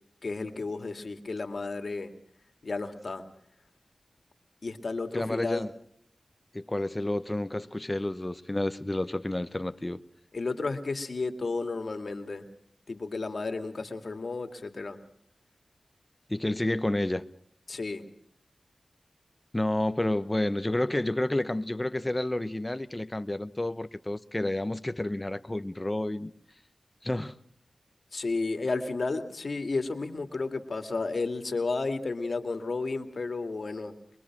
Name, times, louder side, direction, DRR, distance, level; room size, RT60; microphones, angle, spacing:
voice 1, 0.2-2.1 2.6-3.2 4.6-5.7 10.3-12.4 12.9-15.0 17.7-18.0 28.1-33.9, left 3 dB, 65° left, 2.4 m, -32 dB
voice 2, 5.1-5.7 6.5-10.0 16.3-17.2 19.5-26.3 27.0-27.4, left 1 dB, 25° left, 1.0 m, -30 dB
23.5 x 22.5 x 6.2 m
cardioid pair, 50°, 0 cm